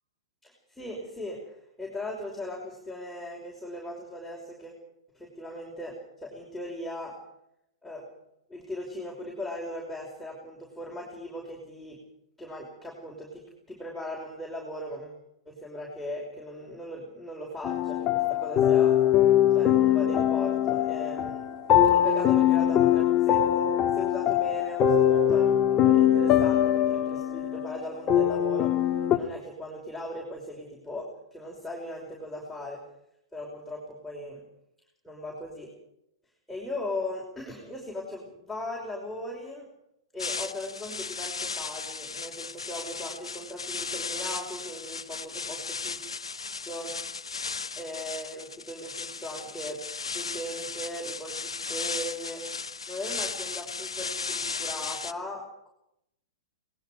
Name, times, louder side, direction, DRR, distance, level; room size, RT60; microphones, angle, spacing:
voice 1, 0.4-4.8 5.1-7.1 7.8-8.1 8.5-12.0 12.4-13.4 13.7-15.2 15.5-19.0 19.5-21.4 21.8-28.8 29.1-32.8 33.3-34.4 35.0-35.7 36.5-39.7 40.1-46.1 46.6-46.9 47.8-52.4 52.9-55.7, left 1 dB, 5° left, -4 dB, 5.5 m, -38 dB
sound 1, 17.6-29.2, left 10 dB, 25° left, 2.0 m, -22 dB
sound 2, 40.2-55.1, left 4 dB, 80° left, 1.2 m, -36 dB
27.5 x 20.0 x 5.0 m, 0.80 s
figure-of-eight pair, 105°, 3 cm